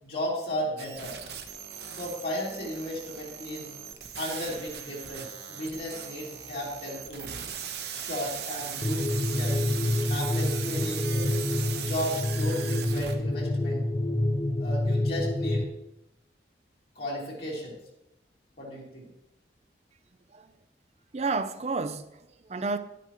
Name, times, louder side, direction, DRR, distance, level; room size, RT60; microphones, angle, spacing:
voice 1, 0.0-1.2 1.9-3.7 4.2-7.4 7.9-9.1 9.4-9.6 10.1-11.3 11.7-13.8 14.6-15.7 16.9-17.8 18.6-19.0, equal, 60° left, 2.9 m, -35 dB
sound 1, 0.8-13.1, right 8 dB, 65° right, 1.0 m, -39 dB
sound 2, 8.8-15.6, left 1 dB, 20° left, 0.4 m, -27 dB
voice 2, 21.1-22.8, right 3 dB, 35° right, 0.5 m, -31 dB
11.0 x 9.2 x 3.0 m
head